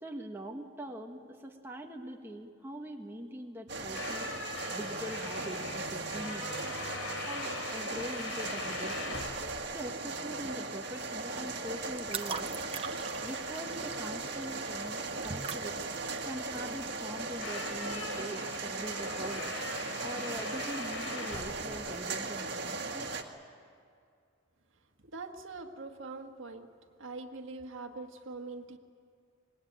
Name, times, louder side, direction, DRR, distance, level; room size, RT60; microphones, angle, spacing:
voice 1, 0.0-4.3 4.7-6.6 7.2-9.2 9.7-12.5 13.2-15.9 16.2-19.5 20.0-23.1, equal, 10° right, 1 dB, 1.4 m, -43 dB
sound 1, 3.7-22.6, left 3 dB, 85° left, 3.3 m, -43 dB
sound 2, 3.7-23.2, right 3 dB, 50° right, 1.9 m, -38 dB
sound 3, 11.5-18.2, right 5 dB, 25° right, 0.9 m, -43 dB
voice 2, 25.1-26.7 27.0-28.8, right 3 dB, 70° right, 4 dB, 1.7 m, -43 dB
26.0 x 21.0 x 8.7 m, 2.2 s
head